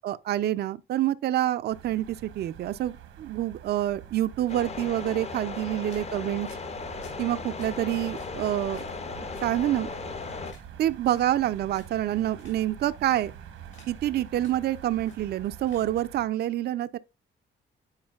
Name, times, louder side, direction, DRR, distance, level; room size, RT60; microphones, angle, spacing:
voice 1, 0.0-6.5 7.2-8.8 9.2-9.9 10.8-13.3 13.9-17.0, right 13 dB, 55° right, 0.4 m, -27 dB
sound 1, 1.7-16.3, right 9 dB, 85° right, 1.1 m, -46 dB
sound 2, 4.5-10.5, left 4 dB, 35° left, 0.6 m, -37 dB
sound 3, 5.4-15.9, left 4 dB, 70° left, 3.6 m, -56 dB
9.6 x 4.4 x 2.3 m
cardioid pair, 90°, 20 cm